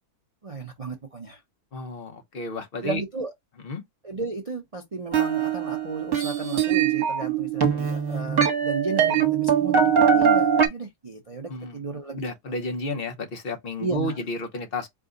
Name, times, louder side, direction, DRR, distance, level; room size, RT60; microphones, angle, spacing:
voice 1, 0.4-1.4 2.8-3.3 4.0-12.2 13.8-14.2, right 4 dB, 30° right, 0.6 m, -33 dB
voice 2, 1.7-3.0 3.6-3.8 11.5-11.8 12.2-14.9, left 2 dB, 40° left, 1.1 m, -32 dB
sound 1, 5.1-10.7, right 7 dB, 55° right, 1.5 m, -22 dB
4.8 x 2.4 x 3.8 m
omnidirectional pair, 1.7 m